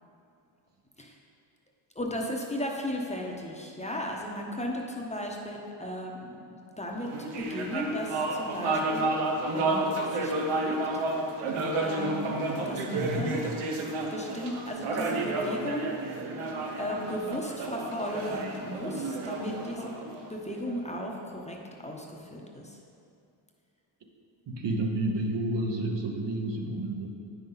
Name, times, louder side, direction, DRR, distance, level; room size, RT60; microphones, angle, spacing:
voice 1, 1.9-6.3 6.8-9.1 9.5-9.8 10.1-10.8 11.8-12.3 12.6-13.5 14.1-15.9 16.8-19.9 20.3-22.8, left 1 dB, 15° left, -1 dB, 0.9 m, -35 dB
sound 1, 7.0-20.7, right 2 dB, 85° right, 1.0 m, -31 dB
voice 2, 12.9-13.3 24.5-27.1, right 1 dB, 55° right, 1 dB, 1.1 m, -30 dB
9.1 x 5.8 x 4.0 m, 2.5 s
cardioid pair, 80°, 49 cm